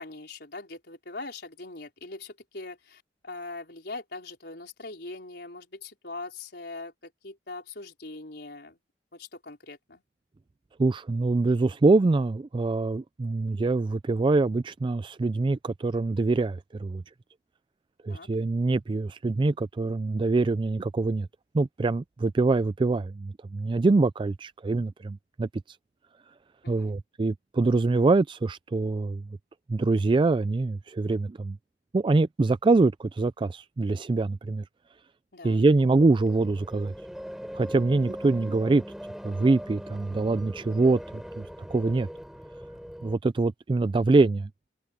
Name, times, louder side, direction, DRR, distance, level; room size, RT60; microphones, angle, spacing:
voice 1, 0.0-8.8 9.1-10.0 18.1-18.3 26.6-26.9 35.3-35.7, left 3 dB, 65° left, 4.7 m, -41 dB
voice 2, 10.8-17.0 18.0-21.3 21.5-25.5 26.7-29.2 29.7-31.6 31.9-34.6 35.4-36.9 37.5-38.8 39.2-41.4 41.7-42.1 43.0-44.5, right 3 dB, 30° right, 0.3 m, -24 dB
sound 1, 35.8-43.2, equal, ahead, 4.0 m, -41 dB
head